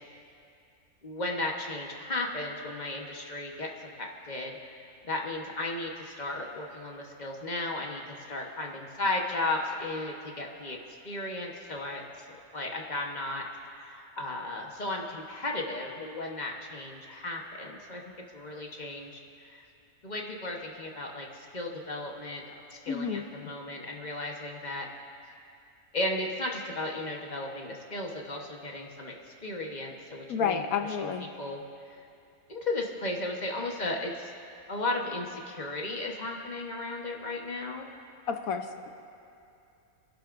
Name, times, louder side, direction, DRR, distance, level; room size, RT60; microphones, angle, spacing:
voice 1, 1.0-3.7 4.0-4.6 5.0-10.8 11.0-12.0 12.3-13.4 13.8-18.0 18.3-19.1 19.4-19.6 20.0-22.4 22.9-24.9 25.9-29.1 29.4-30.6 31.0-31.1 31.4-31.6 32.5-34.3 34.7-37.9, left 2 dB, 35° left, 0 dB, 1.2 m, -35 dB
voice 2, 22.9-23.2 30.3-31.3 38.3-38.9, left 6 dB, 80° left, 6 dB, 1.3 m, -30 dB
30.0 x 11.5 x 2.6 m, 2.6 s
omnidirectional pair, 1.5 m